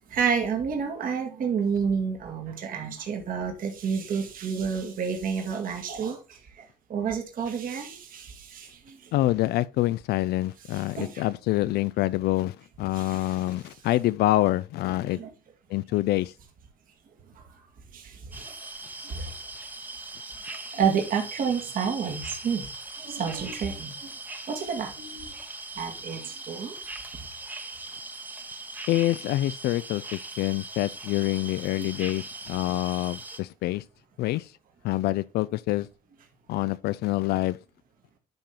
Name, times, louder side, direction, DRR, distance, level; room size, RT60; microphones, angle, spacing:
voice 1, 0.1-6.6 6.9-9.3 10.7-11.3 12.9-13.5 15.0-15.3 17.9-18.6 19.0-19.3 20.7-22.7 23.0-24.1 24.5-25.3 25.8-26.8 31.8-32.0, right 6 dB, 55° right, 1.9 m, -30 dB
voice 2, 9.1-15.2 15.7-16.3 28.9-33.8 34.2-34.5 34.8-35.9 36.5-37.6, left 16 dB, 75° left, 0.4 m, -26 dB
sound 1, 18.3-33.4, right 2 dB, 10° right, 1.0 m, -40 dB
10.5 x 3.8 x 4.3 m
cardioid pair, 110°, 17 cm